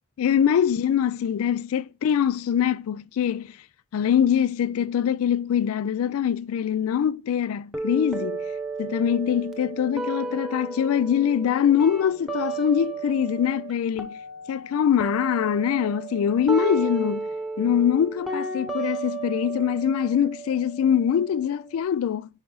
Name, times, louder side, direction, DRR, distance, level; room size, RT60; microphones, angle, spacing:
voice 1, 0.2-3.6 3.9-8.5 8.8-14.2 14.5-17.3 17.6-22.3, left 8 dB, 80° left, 0.3 m, -23 dB
sound 1, 7.7-13.7 14.0-21.8, right 3 dB, ahead, 1.0 m, -33 dB
10.5 x 4.9 x 3.9 m
head